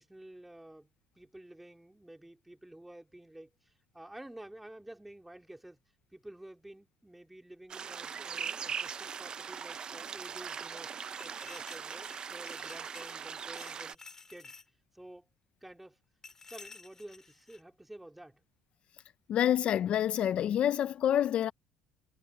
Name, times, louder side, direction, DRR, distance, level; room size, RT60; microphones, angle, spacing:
voice 1, 0.0-5.8 6.1-10.9 11.2-14.0 14.3-14.6 14.9-15.3 15.6-16.0 16.5-18.4, right 1 dB, 5° right, 3.9 m, -51 dB
sound 1, 7.7-13.9, right 7 dB, 35° right, 0.7 m, -40 dB
sound 2, 11.1-13.3 13.5-14.7 16.2-17.6, left 4 dB, 20° left, 2.2 m, -53 dB
voice 2, 19.3-21.5, left 10 dB, 50° left, 0.5 m, -27 dB
cardioid pair, 115°, 2 cm